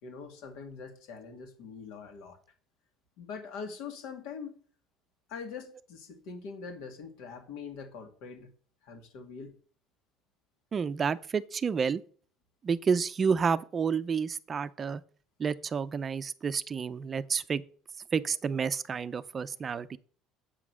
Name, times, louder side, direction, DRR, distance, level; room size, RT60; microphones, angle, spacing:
voice 1, 0.0-2.4 3.2-4.5 5.3-8.5 8.8-9.6, left 5 dB, 80° left, 2.2 m, -43 dB
voice 2, 10.7-12.0 12.6-15.0 15.4-17.6 18.1-20.0, right 6 dB, 30° right, 0.5 m, -30 dB
7.7 x 6.1 x 6.1 m
cardioid pair, 130°, 0 cm